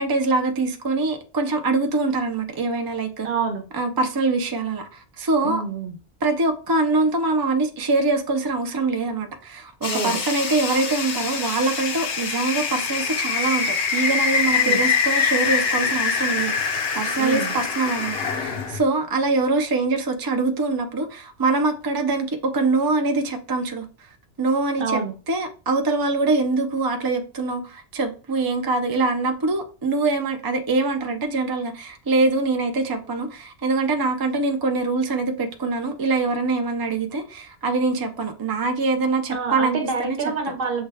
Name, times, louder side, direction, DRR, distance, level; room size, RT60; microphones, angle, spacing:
voice 1, 0.0-3.3 3.7-5.6 6.2-23.9 24.4-25.0 25.3-40.2, right 3 dB, 35° right, 0.3 m, -24 dB
voice 2, 3.2-3.7 5.4-6.0 9.9-10.2 14.5-14.8 17.2-17.5 24.8-25.2 39.3-40.8, right 5 dB, 55° right, 0.9 m, -27 dB
sound 1, 9.8-18.8, left 6 dB, 65° left, 0.8 m, -24 dB
6.5 x 2.2 x 3.4 m
omnidirectional pair, 1.1 m